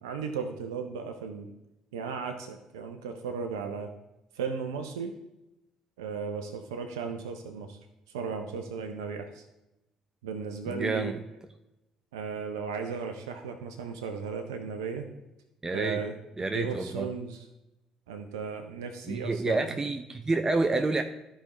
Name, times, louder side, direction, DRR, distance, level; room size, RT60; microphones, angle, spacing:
voice 1, 0.0-1.5 1.9-3.9 4.3-5.2 6.0-7.8 8.1-9.4 10.2-11.1 12.1-15.1 15.7-17.4 18.1-19.7, right 5 dB, 80° right, 5 dB, 0.6 m, -35 dB
voice 2, 10.7-11.2 15.6-16.0 16.4-17.1 19.1-21.0, right 3 dB, 25° right, 6 dB, 0.6 m, -28 dB
13.0 x 5.0 x 3.0 m, 0.95 s
hypercardioid pair, 50°, 2 cm